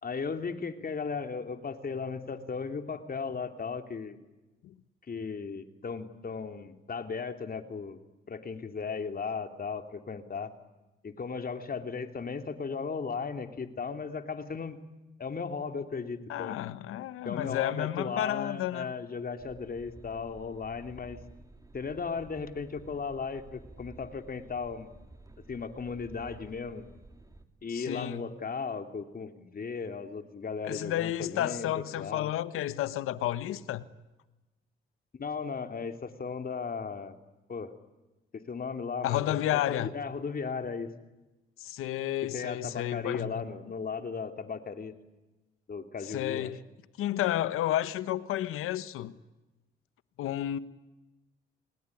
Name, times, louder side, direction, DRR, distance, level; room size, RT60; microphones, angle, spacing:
voice 1, 0.0-4.2 5.1-8.0 8.3-10.5 11.0-14.8 15.2-16.6 17.2-21.2 21.7-24.9 25.5-26.9 27.6-31.7 32.0-32.3 35.1-37.1 37.5-37.7 38.3-39.4 39.7-40.9 42.3-44.9 45.7-46.5, left 5 dB, 45° left, 3.0 m, -36 dB
voice 2, 16.3-18.9 27.7-28.2 30.6-33.8 39.0-39.9 41.6-43.3 46.0-46.6 47.0-49.1 50.2-50.6, left 13 dB, 85° left, 1.2 m, -31 dB
sound 1, 19.4-27.4, right 2 dB, 15° right, 3.2 m, -53 dB
29.5 x 20.5 x 10.0 m
supercardioid pair, 65°, 21 cm